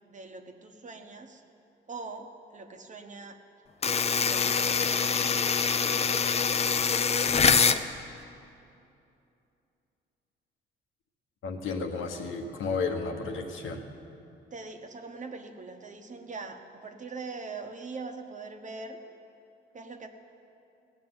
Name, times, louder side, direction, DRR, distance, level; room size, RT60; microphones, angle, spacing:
voice 1, 0.0-1.4 1.9-3.4 4.2-5.5 14.5-19.0 19.7-20.1, right 4 dB, 40° right, 5 dB, 1.2 m, -42 dB
sound 1, 3.8-7.8, left 6 dB, 30° left, 0.5 m, -24 dB
voice 2, 11.4-13.8, left 4 dB, 80° left, 4 dB, 1.4 m, -32 dB
16.5 x 6.7 x 9.6 m, 2.7 s
cardioid pair, 90°, 20 cm